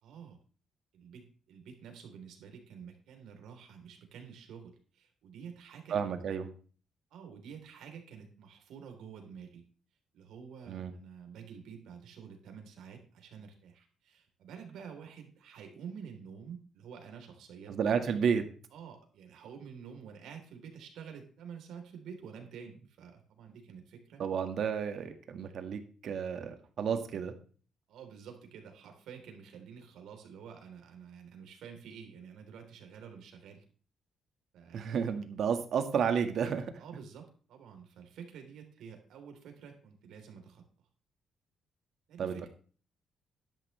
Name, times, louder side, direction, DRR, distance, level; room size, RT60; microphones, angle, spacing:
voice 1, 0.0-0.4 0.9-6.0 7.1-9.6 10.1-17.8 18.7-24.2 27.9-33.6 34.5-34.8 36.8-40.6 42.1-42.5, right 7 dB, 80° right, 4 dB, 3.6 m, -49 dB
voice 2, 5.9-6.5 10.7-10.9 17.7-18.5 24.2-27.3 34.7-36.7 42.2-42.5, right 7 dB, 55° right, 7 dB, 1.7 m, -31 dB
12.5 x 11.0 x 3.3 m, 0.40 s
cardioid pair, 150°, 0 cm